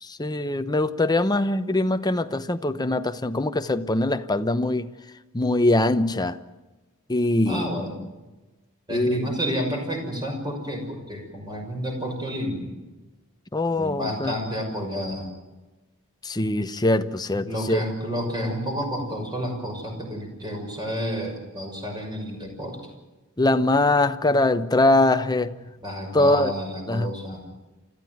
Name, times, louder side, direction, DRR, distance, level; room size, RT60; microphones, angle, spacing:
voice 1, 0.0-4.9 5.3-6.4 7.1-7.7 8.9-9.2 13.5-14.3 16.2-17.8 23.4-25.5 26.1-26.5 26.9-27.1, left 2 dB, 20° left, 10 dB, 0.9 m, -22 dB
voice 2, 7.5-8.0 8.9-12.7 13.8-15.3 17.4-22.8 25.8-27.4, equal, 20° right, 2 dB, 6.2 m, -30 dB
30.0 x 14.0 x 9.3 m, 1.1 s
head